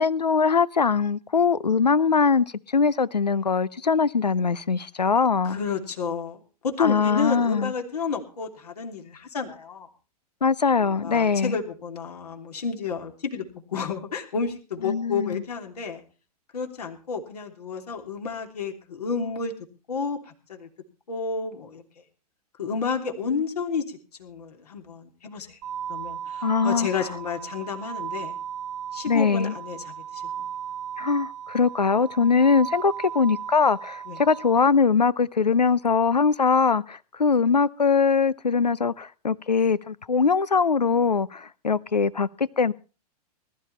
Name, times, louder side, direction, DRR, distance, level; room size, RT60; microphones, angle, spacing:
voice 1, 0.0-5.6 6.8-7.7 10.4-11.6 14.8-15.4 26.4-26.9 29.1-29.5 31.0-42.7, left 5 dB, 85° left, 0.7 m, -22 dB
voice 2, 5.4-9.9 10.7-13.4 13.7-16.0 16.5-19.5 19.9-20.2 20.5-20.7 21.1-21.8 22.6-25.6 25.9-28.4 28.9-30.2 34.1-34.2, left 5 dB, 70° left, 3.2 m, -31 dB
sound 1, 25.6-34.7, right 8 dB, 50° right, 0.9 m, -36 dB
20.0 x 12.5 x 4.2 m
figure-of-eight pair, 100°, 21 cm